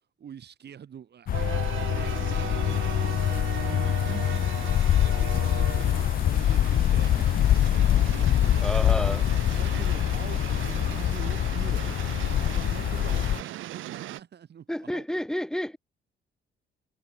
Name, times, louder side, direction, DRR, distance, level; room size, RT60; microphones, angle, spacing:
voice 1, 0.2-1.6 1.9-8.6 9.5-15.1, right 8 dB, 55° right, 7.1 m, -45 dB
sound 1, 1.3-13.4, left 11 dB, 45° left, 0.4 m, -24 dB
sound 2, 1.3-14.2, right 15 dB, 85° right, 1.3 m, -38 dB
voice 2, 8.6-9.3 14.7-15.8, equal, 5° left, 1.5 m, -30 dB
cardioid pair, 90°, 20 cm